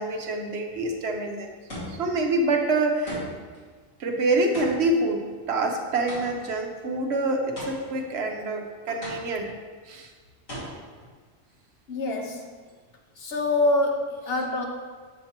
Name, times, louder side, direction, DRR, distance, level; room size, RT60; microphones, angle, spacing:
voice 1, 0.0-1.5 1.9-3.2 4.0-9.5 9.9-10.1, right 2 dB, 60° right, 2 dB, 0.9 m, -26 dB
sound 1, 0.7-1.1 1.7-2.2 3.1-3.6 4.5-6.6 7.6-8.1 9.0-9.6 10.5-10.6, equal, 80° left, 2.5 m, -38 dB
voice 2, 11.9-12.5 13.2-14.7, left 2 dB, 60° left, 2 dB, 0.7 m, -25 dB
7.2 x 5.8 x 2.9 m, 1.5 s
omnidirectional pair, 1.3 m